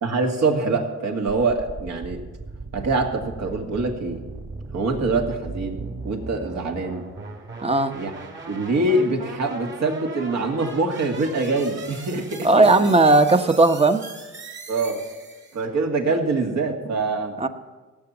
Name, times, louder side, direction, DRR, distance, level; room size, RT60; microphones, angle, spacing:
voice 1, 0.0-2.2 2.7-4.2 4.7-7.1 7.9-8.1 8.5-12.9 14.7-15.1 15.5-17.4, right 3 dB, 60° right, 2 dB, 2.3 m, -24 dB
sound 1, 1.3-15.7, right 3 dB, 40° right, 2.3 m, -38 dB
voice 2, 7.6-7.9 12.4-14.0 17.4-17.5, right 2 dB, 20° right, 9 dB, 1.0 m, -16 dB
17.0 x 7.8 x 7.2 m, 1.3 s
cardioid pair, 90°, 30 cm